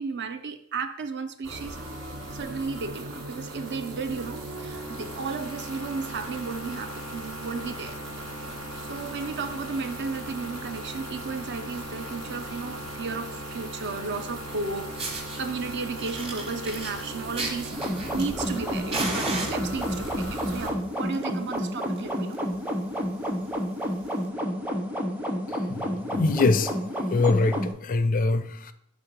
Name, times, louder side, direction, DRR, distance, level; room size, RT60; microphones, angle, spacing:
voice 1, 0.0-1.8 2.3-8.0 8.8-17.8 18.1-22.4, right 4 dB, 50° right, 0.5 m, -34 dB
sound 1, 1.4-20.7, right 1 dB, 85° right, 1.6 m, -38 dB
Fire, 14.5-14.6 15.0-15.4 16.0-18.6 18.9-20.1 20.9-21.2 21.5-21.6 22.0-22.1 22.3-22.5 23.1-23.2 24.1-24.2, right 2 dB, 25° right, 1.1 m, -34 dB
sound 2, 17.7-27.7, equal, 5° right, 0.7 m, -30 dB
voice 2, 25.5-26.8 27.1-28.7, left 3 dB, 40° left, 0.4 m, -24 dB
6.2 x 3.5 x 5.9 m
head